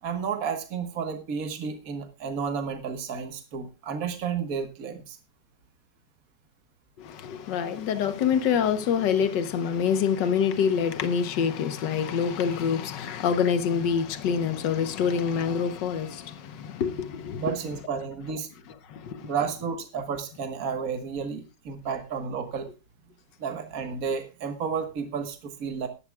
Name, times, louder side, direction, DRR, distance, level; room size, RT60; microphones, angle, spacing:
voice 1, 0.0-5.2 17.4-18.5 19.2-22.7 23.4-25.9, right 6 dB, 55° right, 1.8 m, -32 dB
voice 2, 7.0-17.5 18.9-19.3, left 7 dB, 80° left, 1.7 m, -26 dB
18.0 x 12.0 x 2.3 m
omnidirectional pair, 1.9 m